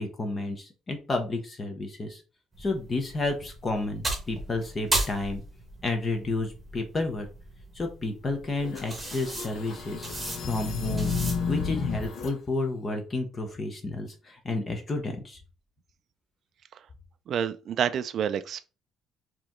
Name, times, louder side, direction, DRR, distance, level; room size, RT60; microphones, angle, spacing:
voice 1, 0.0-2.2 2.6-5.4 5.8-7.3 7.7-10.1 10.4-11.2 11.5-15.4, left 2 dB, 25° left, 0.9 m, -31 dB
sound 1, 2.5-11.7, right 2 dB, 10° right, 1.4 m, -36 dB
sound 2, 8.6-12.3, left 5 dB, 70° left, 1.2 m, -32 dB
voice 2, 17.3-18.7, right 8 dB, 50° right, 0.3 m, -28 dB
4.8 x 3.0 x 3.6 m
cardioid pair, 140°, 0 cm